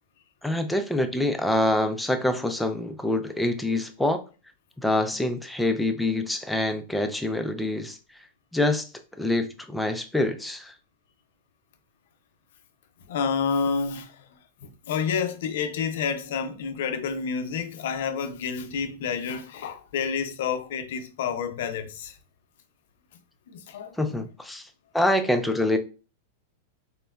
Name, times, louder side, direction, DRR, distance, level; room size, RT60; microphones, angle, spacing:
voice 1, 0.4-4.2 4.8-8.0 8.5-10.7 24.0-24.7 24.9-25.8, left 1 dB, 5° left, 0.4 m, -25 dB
voice 2, 13.1-14.2 14.6-22.1 23.5-24.2, left 6 dB, 70° left, 0.5 m, -29 dB
3.7 x 2.1 x 2.2 m
supercardioid pair, 135°, 0 cm